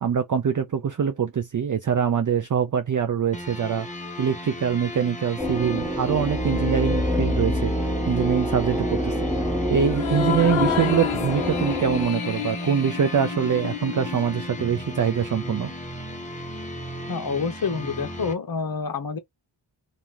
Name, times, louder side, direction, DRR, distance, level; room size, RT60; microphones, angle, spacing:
voice 1, 0.0-3.9 4.2-7.7 8.1-9.3 9.7-15.7, right 7 dB, 40° right, 0.5 m, -24 dB
sound 1, 3.3-18.3, equal, 15° left, 1.1 m, -35 dB
sound 2, 5.4-12.1, equal, ahead, 1.5 m, -26 dB
sound 3, 9.9-14.6, left 12 dB, 80° left, 0.6 m, -31 dB
voice 2, 17.1-19.2, left 5 dB, 45° left, 0.9 m, -28 dB
2.9 x 2.6 x 3.6 m
wide cardioid pair, 70°, 47 cm